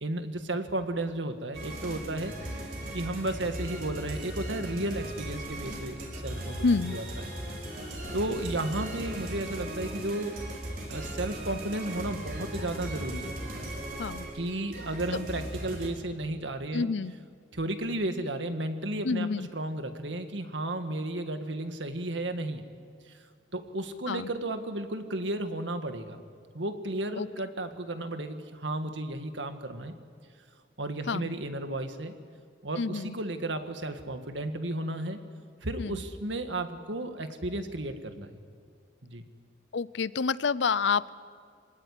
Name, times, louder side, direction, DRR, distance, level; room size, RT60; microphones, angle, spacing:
voice 1, 0.0-2.3 2.9-7.2 8.1-10.4 10.9-13.4 14.3-16.9 17.5-22.6 23.5-26.2 26.5-29.9 30.8-32.1 32.6-35.2 35.6-38.3 39.0-39.2, right 1 dB, 80° right, 8 dB, 1.8 m, -33 dB
sound 1, 1.5-15.9, right 1 dB, 50° right, 5.1 m, -38 dB
voice 2, 6.6-7.0 14.0-14.3 16.7-17.1 19.0-19.5 24.1-24.3 27.2-27.3 31.1-31.3 32.8-33.2 35.8-36.0 39.7-41.1, left 4 dB, 75° left, 18 dB, 0.6 m, -28 dB
25.0 x 18.0 x 10.0 m, 2.1 s
head